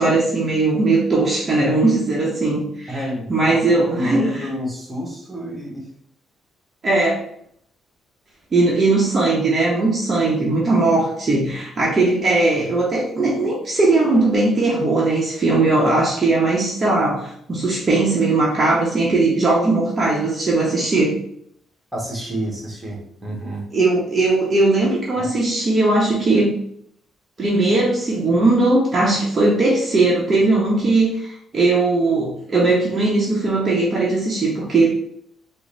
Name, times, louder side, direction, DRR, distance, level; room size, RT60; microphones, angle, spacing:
voice 1, 0.0-4.4 6.8-7.2 8.5-21.2 23.7-26.5 27.4-34.9, right 2 dB, 35° right, -4 dB, 0.9 m, -19 dB
voice 2, 2.9-5.9 21.9-23.6 25.2-25.3, equal, 10° right, -3 dB, 1.3 m, -29 dB
3.7 x 2.1 x 3.3 m, 0.69 s
cardioid pair, 90°, 0 cm